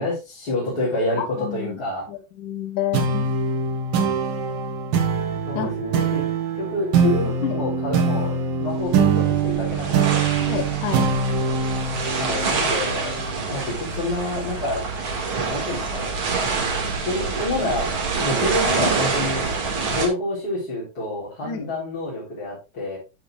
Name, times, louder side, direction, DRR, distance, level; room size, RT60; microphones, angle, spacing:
voice 1, 0.0-2.0 3.9-4.0 5.5-6.3 6.6-8.3 8.6-10.2 12.2-13.2 13.5-14.8 15.5-16.1 17.1-17.9 18.2-19.5 19.9-23.0, left 1 dB, 25° left, -7 dB, 3.6 m, -28 dB
voice 2, 1.2-1.8 2.1-3.3 5.5-5.7 7.4-7.6 10.4-11.1 21.4-21.7, left 10 dB, 60° left, 7 dB, 2.4 m, -29 dB
sound 1, 2.9-13.8, right 5 dB, 65° right, 3.1 m, -23 dB
Intense waves at seashore (big ship approaching), 8.7-20.1, right 4 dB, 45° right, 1.9 m, -26 dB
10.5 x 8.4 x 2.4 m, 0.28 s
omnidirectional pair, 4.9 m